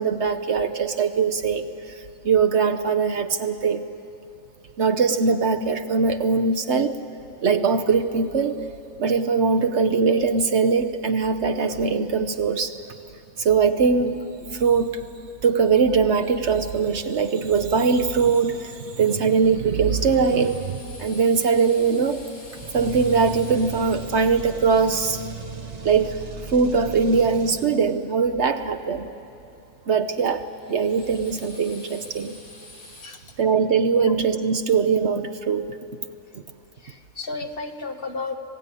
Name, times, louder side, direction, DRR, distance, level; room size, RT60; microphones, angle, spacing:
voice 1, 0.0-3.8 4.8-7.0 7.4-8.6 9.0-12.8 13.4-14.2 14.5-14.9 15.4-22.2 22.7-25.3 25.8-26.2 26.5-29.1 29.9-32.4 33.4-35.8 36.3-36.4, right 5 dB, 55° right, 7 dB, 1.0 m, -21 dB
Drill, 17.7-26.7 30.1-33.1, left 2 dB, 85° left, 4.4 m, -48 dB
sound 1, 22.6-28.0, right 4 dB, 30° right, 1.0 m, -37 dB
voice 2, 33.0-33.3 33.9-34.2 36.8-38.4, left 3 dB, 45° left, 6 dB, 1.3 m, -33 dB
26.0 x 17.5 x 9.7 m, 2.9 s
omnidirectional pair, 1.5 m